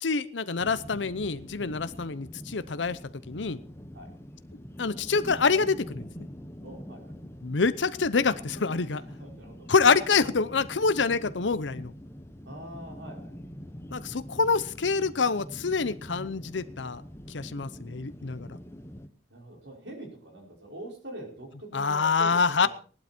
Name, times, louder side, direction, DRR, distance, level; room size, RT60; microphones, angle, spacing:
voice 1, 0.0-3.0 3.3-3.6 4.8-6.1 7.4-9.0 9.7-11.9 13.9-17.0 17.3-18.6 21.7-22.7, left 4 dB, 90° left, 14 dB, 0.8 m, -26 dB
sound 1, 0.6-19.1, equal, 15° left, 1.1 m, -44 dB
voice 2, 6.6-7.2 8.9-9.7 12.5-13.4 19.3-22.7, right 1 dB, 75° right, 2 dB, 5.2 m, -44 dB
18.0 x 12.0 x 4.4 m, 0.40 s
head